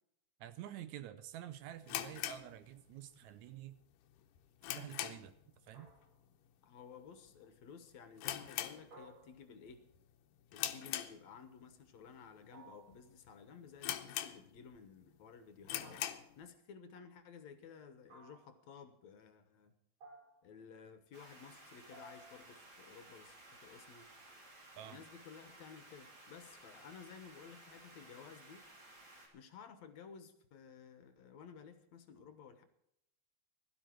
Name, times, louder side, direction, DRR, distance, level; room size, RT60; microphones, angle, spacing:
voice 1, 0.4-3.8 4.8-5.4 5.6-5.9 24.8-25.0, right 12 dB, 75° right, 13 dB, 1.9 m, -49 dB
sound 1, 1.8-3.2 3.5-3.6 4.1-5.5 5.7-6.0 6.3-6.4 7.1-7.4 7.7-7.8 8.2-9.3 9.7-10.0 10.5-11.6 12.2-12.3 12.9-13.0 13.3-13.4 13.8-14.8 15.1-15.2 15.6-16.3, left 12 dB, 90° left, 2.4 m, -41 dB
sound 2, 5.7-6.4 8.9-9.8 12.5-13.1 15.8-16.5 18.1-18.6 20.0-20.6 21.9-22.5, right 2 dB, 55° right, 6.1 m, -58 dB
voice 2, 6.6-9.9 10.5-16.0 16.4-19.7 20.4-24.1 24.8-28.7 29.3-32.7, left 6 dB, 65° left, 9 dB, 2.3 m, -55 dB
sound 3, 21.1-29.3, right 2 dB, 35° right, 3.2 m, -58 dB
16.5 x 12.0 x 4.5 m, 0.75 s
omnidirectional pair, 3.6 m